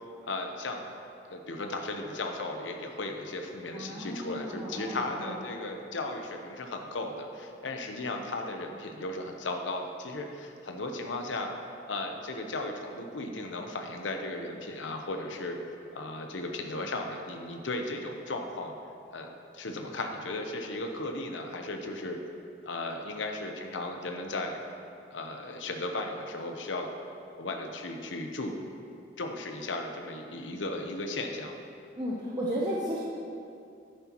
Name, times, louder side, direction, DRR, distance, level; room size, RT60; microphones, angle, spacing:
voice 1, 0.2-0.8 1.3-11.5 11.9-15.6 15.9-18.7 19.1-22.2 22.7-24.6 25.1-26.9 27.4-28.6 29.2-31.5, left 2 dB, 85° left, 3 dB, 0.8 m, -36 dB
voice 2, 3.7-5.4 32.0-33.0, equal, 20° right, -5 dB, 0.8 m, -34 dB
10.5 x 9.8 x 3.0 m, 2.6 s
head